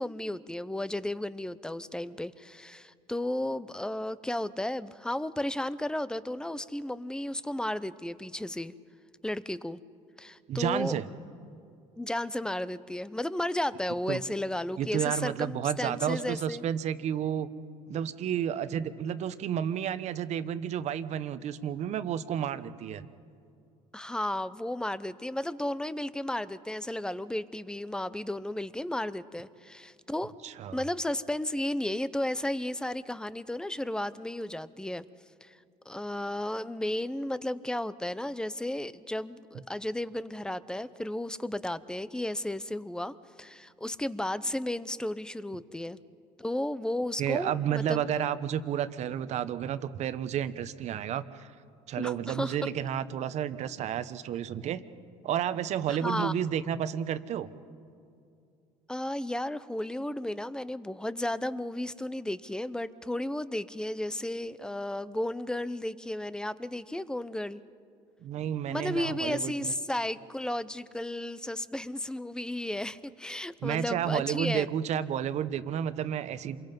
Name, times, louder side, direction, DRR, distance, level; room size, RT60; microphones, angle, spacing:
voice 1, 0.0-8.7 9.2-9.8 10.2-11.0 12.0-16.6 23.9-30.3 30.7-35.1 35.4-35.6 35.9-46.0 46.4-48.0 52.0-52.7 55.9-56.4 58.9-67.6 68.7-74.7, left 1 dB, 5° left, 16 dB, 0.7 m, -33 dB
voice 2, 10.5-11.1 14.1-14.2 14.8-17.5 17.9-23.1 30.4-30.8 47.2-51.5 51.9-54.8 55.2-57.5 68.2-69.7 73.6-76.6, right 9 dB, 55° right, 12 dB, 1.0 m, -31 dB
27.5 x 22.5 x 5.4 m, 2.5 s
supercardioid pair, 100°, 13 cm